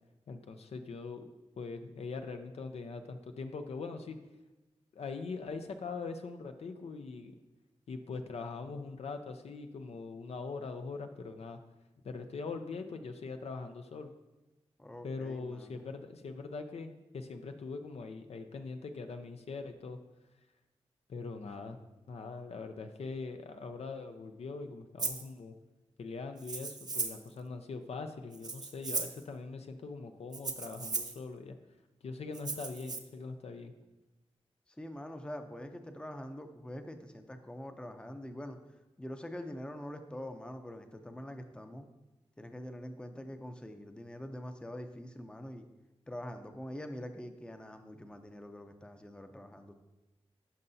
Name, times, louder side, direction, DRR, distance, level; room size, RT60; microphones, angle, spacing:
voice 1, 0.3-1.2 1.6-4.2 4.9-7.3 7.9-11.6 12.0-14.1 15.0-20.0 21.1-21.8 22.1-25.5 26.0-31.6 32.0-33.7, left 4 dB, 70° left, 7 dB, 0.6 m, -42 dB
voice 2, 14.8-15.9 34.8-38.6 39.0-41.9 42.4-45.7 46.1-49.7, left 1 dB, 10° left, 7 dB, 0.6 m, -44 dB
Rattle (instrument), 25.0-25.3 26.4-27.3 28.3-29.2 30.3-31.2 32.3-33.0, right 4 dB, 40° right, 0.6 m, -37 dB
11.0 x 5.3 x 2.7 m, 1.0 s
cardioid pair, 70°, 11 cm